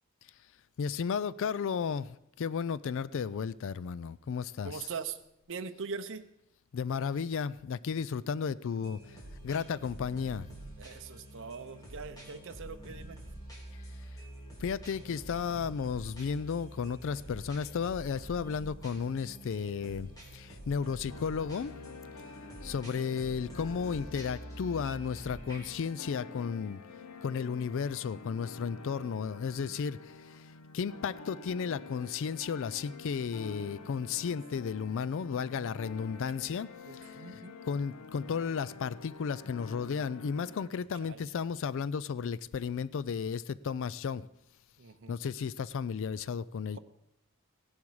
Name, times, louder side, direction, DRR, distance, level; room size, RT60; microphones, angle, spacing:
voice 1, 0.8-4.9 6.7-9.2 9.4-10.5 14.6-21.7 22.6-26.8 27.2-37.4 37.7-44.3 45.1-46.8, left 6 dB, 60° left, 0.4 m, -34 dB
voice 2, 4.6-5.2 5.5-6.2 10.8-13.2 28.8-29.7 32.8-32.9 34.3-34.4 36.9-37.5 41.0-41.2 44.8-45.2, right 5 dB, 60° right, 0.7 m, -42 dB
sound 1, 8.8-25.8, right 1 dB, 15° left, 3.1 m, -47 dB
sound 2, 21.1-40.7, left 4 dB, 85° left, 0.7 m, -48 dB
16.0 x 11.0 x 4.8 m
head